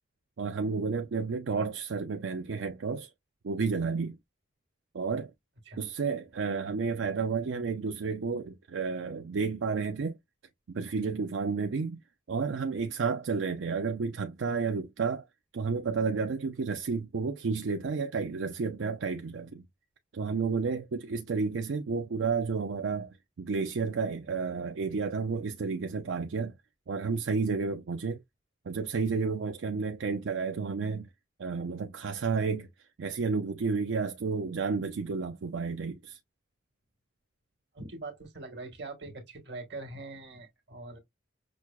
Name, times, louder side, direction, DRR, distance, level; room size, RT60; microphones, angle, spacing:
voice 1, 0.4-3.1 3.4-4.2 4.9-5.3 5.8-10.2 10.7-12.0 12.3-15.3 15.5-19.6 20.1-26.5 26.9-28.2 28.7-31.1 31.4-32.7 33.0-36.2, right 5 dB, 90° right, 0.5 m, -31 dB
voice 2, 37.7-41.0, right 3 dB, 65° right, 1.4 m, -42 dB
6.1 x 2.1 x 2.3 m
head